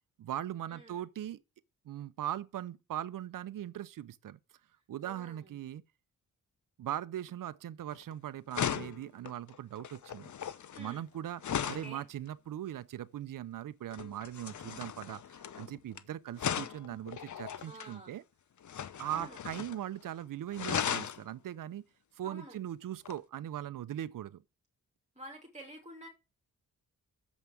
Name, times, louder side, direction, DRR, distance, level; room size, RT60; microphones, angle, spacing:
voice 1, 0.2-1.4 1.9-4.4 4.9-5.8 6.8-10.3 10.8-11.4 11.7-18.2 19.0-21.8 22.1-24.4, right 11 dB, 75° right, 0.7 m, -40 dB
voice 2, 0.7-1.1 5.0-5.6 10.7-11.0 11.6-12.0 17.6-18.2 19.1-19.4 22.2-22.6 25.2-26.1, right 1 dB, 20° right, 2.6 m, -49 dB
sound 1, 7.9-8.1 8.5-11.9 13.9-16.0 16.4-17.9 18.6-19.8 20.1-20.2 20.5-21.2 23.1-23.2, left 8 dB, 60° left, 0.8 m, -37 dB
7.2 x 5.5 x 7.5 m
cardioid pair, 75°, 33 cm